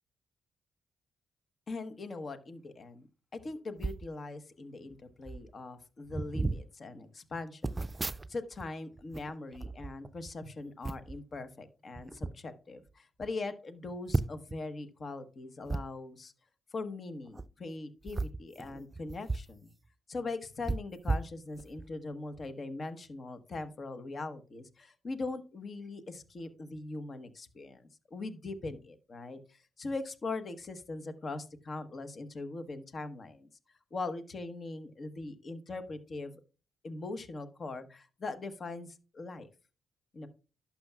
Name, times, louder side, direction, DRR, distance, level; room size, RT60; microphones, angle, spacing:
voice 1, 1.7-3.1 3.3-7.8 8.3-16.3 16.7-19.7 20.1-33.5 33.9-36.4 36.8-39.5 40.1-40.3, left 3 dB, 50° left, 10 dB, 1.1 m, -41 dB
sound 1, 3.8-4.1 4.9-5.0 5.2-5.5 6.1-6.6 7.6-8.7 9.0-10.3 10.8-11.2 11.9-12.3 12.9-13.0 13.2-13.3 14.1-14.6 15.7-15.8 17.3-17.5 18.0-19.5 19.9-20.0 20.6-21.9 22.3-22.5, right 3 dB, 30° right, 0.4 m, -35 dB
11.5 x 5.8 x 2.3 m, 0.33 s
supercardioid pair, 45°, 0 cm